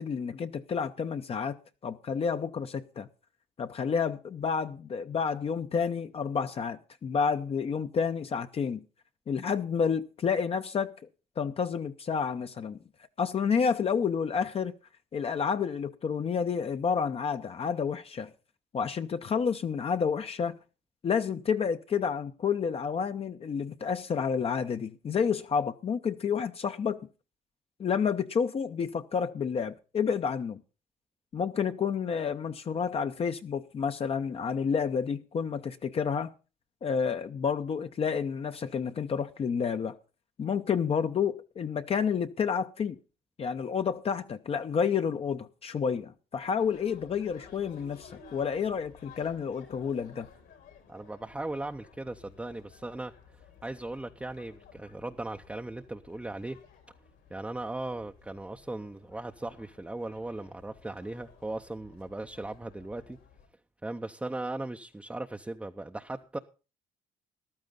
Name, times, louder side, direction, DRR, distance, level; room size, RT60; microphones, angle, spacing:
voice 1, 0.0-1.6 1.8-3.1 3.6-8.8 9.3-10.9 11.4-12.8 13.2-14.7 15.1-18.3 18.7-20.6 21.0-27.0 27.8-30.6 31.3-36.3 36.8-40.0 40.4-43.0 43.4-50.3, left 6 dB, 35° left, 0.7 m, -30 dB
sound 1, 46.6-63.5, left 6 dB, 80° left, 4.2 m, -56 dB
voice 2, 50.9-56.6 57.3-63.2 63.8-66.4, right 2 dB, 5° right, 0.6 m, -38 dB
14.5 x 12.0 x 3.8 m
cardioid pair, 110°, 17 cm